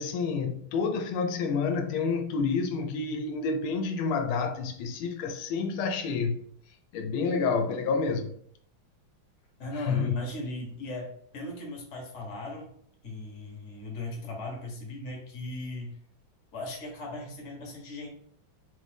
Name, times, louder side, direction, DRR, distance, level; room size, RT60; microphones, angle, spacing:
voice 1, 0.0-6.5 6.9-8.4 9.9-10.2, left 5 dB, 85° left, 1.4 m, -29 dB
voice 2, 9.6-12.7 13.0-16.0 16.5-18.1, left 2 dB, 45° left, 1.1 m, -38 dB
3.8 x 2.6 x 3.3 m
omnidirectional pair, 2.3 m